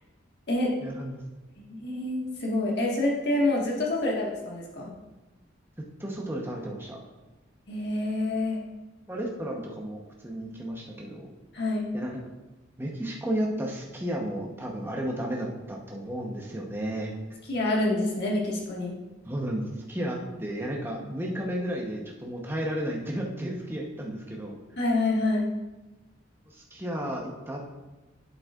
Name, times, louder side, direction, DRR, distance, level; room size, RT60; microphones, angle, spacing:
voice 1, 0.8-1.2 5.8-7.0 9.1-11.3 11.9-12.2 12.8-17.1 19.2-24.6 26.5-27.7, right 1 dB, 10° right, -1 dB, 0.9 m, -33 dB
voice 2, 1.6-4.9 7.7-8.6 11.5-11.9 17.5-18.9 24.8-25.5, left 2 dB, 55° left, -3 dB, 1.7 m, -27 dB
8.1 x 8.0 x 2.5 m, 1.1 s
head